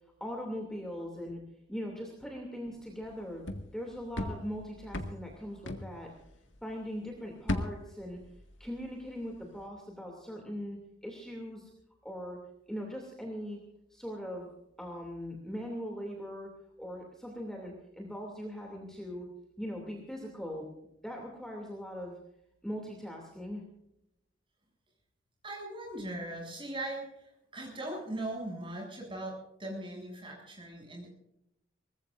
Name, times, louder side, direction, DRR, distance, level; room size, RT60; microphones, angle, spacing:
voice 1, 0.2-1.4 1.7-3.4 3.7-6.1 6.6-8.2 8.6-10.8 11.0-11.7 12.0-12.4 12.7-13.6 13.9-14.5 14.8-16.5 16.8-19.3 19.6-20.7 21.0-22.2 22.6-23.6, equal, 5° left, 0 dB, 2.7 m, -40 dB
sound 1, 3.0-6.8 7.1-9.1 9.4-9.7, left 1 dB, 80° left, 1.9 m, -38 dB
voice 2, 25.4-31.1, right 1 dB, 25° right, -1 dB, 7.5 m, -39 dB
23.0 x 20.0 x 2.6 m, 0.82 s
head